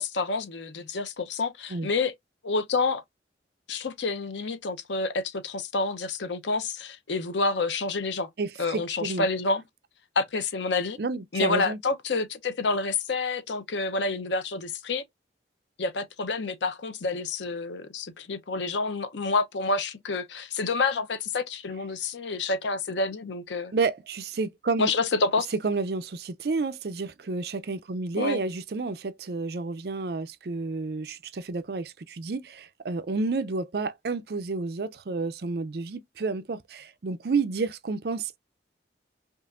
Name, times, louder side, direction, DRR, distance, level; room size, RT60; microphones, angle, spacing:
voice 1, 0.0-2.1 2.4-3.0 3.7-8.3 8.6-9.6 10.2-11.0 11.3-15.0 15.8-23.7 24.8-25.5 28.2-28.4, left 3 dB, 80° left, 0.7 m, -28 dB
voice 2, 8.4-9.3 11.0-11.8 23.7-24.9 25.6-38.4, right 3 dB, 60° right, 0.5 m, -30 dB
5.4 x 2.5 x 2.5 m
head